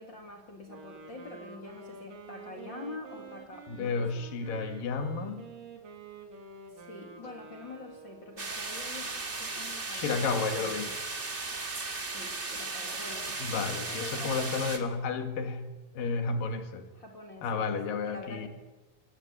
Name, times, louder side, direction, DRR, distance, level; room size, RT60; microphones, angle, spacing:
voice 1, 0.0-4.2 6.7-11.0 12.0-14.9 16.9-18.5, left 2 dB, 35° left, 3 dB, 2.7 m, -46 dB
Wind instrument woodwind instrument, 0.6-8.6, right 5 dB, 70° right, 4.5 m, -48 dB
voice 2, 3.7-5.5 9.9-10.9 13.4-15.7 16.0-16.9 17.4-18.5, left 4 dB, 75° left, 6 dB, 3.8 m, -32 dB
sound 1, 8.4-14.8, right 3 dB, 25° right, 1.9 m, -36 dB
26.0 x 18.5 x 9.0 m, 1.1 s
omnidirectional pair, 4.0 m